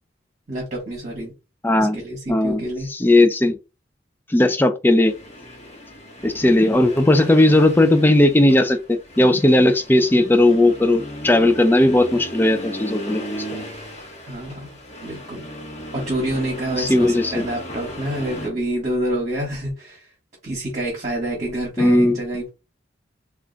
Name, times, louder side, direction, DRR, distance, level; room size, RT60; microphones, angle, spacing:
voice 1, 0.5-1.3 1.8-2.9 14.3-14.7 15.0-15.4 15.9-20.1 20.4-22.5, right 1 dB, 40° right, -4 dB, 1.1 m, -27 dB
voice 2, 1.6-2.0 2.3-2.6 2.9-3.6 4.3-5.1 6.2-13.2 16.8-17.4 21.8-22.2, left 1 dB, 10° left, 8 dB, 0.4 m, -16 dB
Accelerating revving vroom, 5.0-18.5, equal, 35° left, 1.0 m, -36 dB
2.4 x 2.2 x 3.8 m, 0.28 s
head